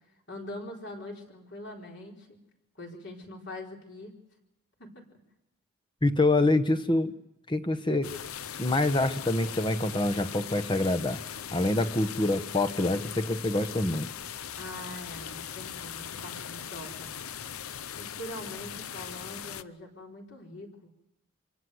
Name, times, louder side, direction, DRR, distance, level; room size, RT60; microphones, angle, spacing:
voice 1, 0.3-2.4 2.7-4.2 4.8-5.1 14.6-17.1 18.0-20.9, left 1 dB, 55° left, 0 dB, 4.4 m, -43 dB
voice 2, 6.0-7.1 7.5-8.1 8.6-11.2 11.5-14.1, left 2 dB, 20° left, 8 dB, 1.1 m, -26 dB
sound 1, 8.0-19.6, left 9 dB, 90° left, 0.7 m, -40 dB
25.5 x 18.0 x 7.9 m, 0.89 s
head